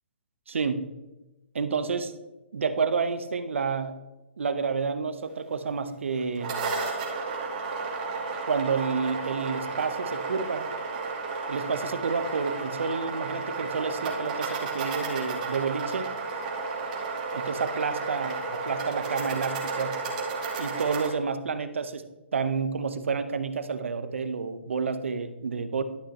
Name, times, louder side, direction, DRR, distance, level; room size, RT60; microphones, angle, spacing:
voice 1, 0.5-0.8 1.5-2.1 2.5-4.0 4.4-6.6 8.5-10.7 11.5-16.1 17.3-20.0 20.6-22.1 22.3-25.8, right 5 dB, 80° right, 10 dB, 0.9 m, -29 dB
sound 1, 6.2-21.1, right 4 dB, 40° right, 2.0 m, -32 dB
11.5 x 5.7 x 4.2 m, 1.1 s
hypercardioid pair, 155°, 7 cm